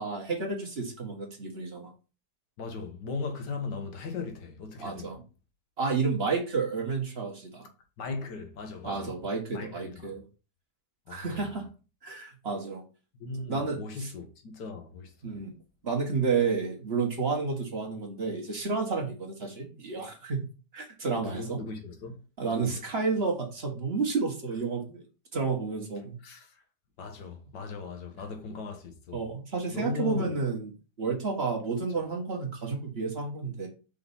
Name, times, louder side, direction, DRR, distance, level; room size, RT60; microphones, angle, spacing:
voice 1, 0.0-1.9 4.8-5.2 5.8-7.7 8.8-10.2 11.1-11.6 12.0-12.8 13.5-14.1 15.2-15.5 15.8-20.5 20.7-21.6 22.4-25.0 25.3-26.2 29.1-30.7 31.0-33.7, right 4 dB, 40° right, 1.6 m, -31 dB
voice 2, 2.6-5.1 8.0-9.2 9.5-10.1 11.1-11.6 13.2-15.4 21.1-22.2 22.5-22.8 26.2-26.6 27.0-29.2 29.7-30.4, left 4 dB, 85° left, 1.9 m, -38 dB
5.5 x 3.8 x 5.5 m
omnidirectional pair, 1.8 m